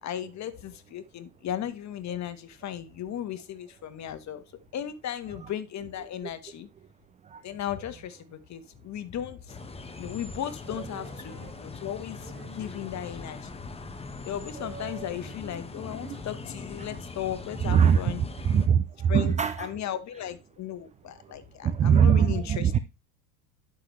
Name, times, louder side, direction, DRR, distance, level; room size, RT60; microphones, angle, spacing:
voice 1, 0.0-4.4 4.7-6.7 7.4-9.6 10.0-13.5 14.2-18.2 19.1-22.8, left 10 dB, 35° left, 1.4 m, -36 dB
sound 1, 9.5-18.7, left 3 dB, 10° left, 1.2 m, -41 dB
sound 2, 10.9-12.7 14.5-16.4, right 5 dB, 75° right, 3.2 m, -47 dB
voice 2, 17.7-18.0 18.5-19.7 21.6-22.8, right 7 dB, 15° right, 0.3 m, -21 dB
11.0 x 6.2 x 3.2 m
hypercardioid pair, 80°, 48 cm